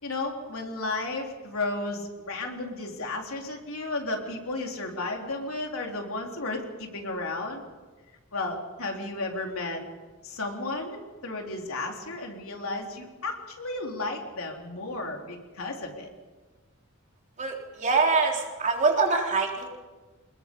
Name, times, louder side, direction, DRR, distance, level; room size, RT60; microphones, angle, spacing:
voice 1, 0.0-7.6 8.3-9.8 10.2-16.1, left 2 dB, 75° left, 1 dB, 3.7 m, -33 dB
voice 2, 17.8-19.7, right 4 dB, 35° right, 0 dB, 3.7 m, -24 dB
26.0 x 21.0 x 5.5 m, 1.3 s
head